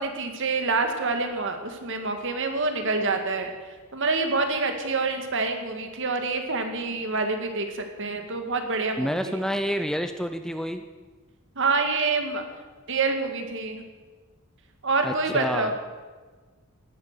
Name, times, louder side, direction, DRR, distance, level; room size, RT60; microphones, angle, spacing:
voice 1, 0.0-9.4 11.6-12.4 12.9-13.8 14.8-15.8, right 3 dB, 55° right, 5 dB, 2.0 m, -27 dB
voice 2, 9.0-10.8 15.0-15.7, equal, ahead, 8 dB, 0.6 m, -28 dB
17.0 x 11.5 x 6.8 m, 1.3 s
head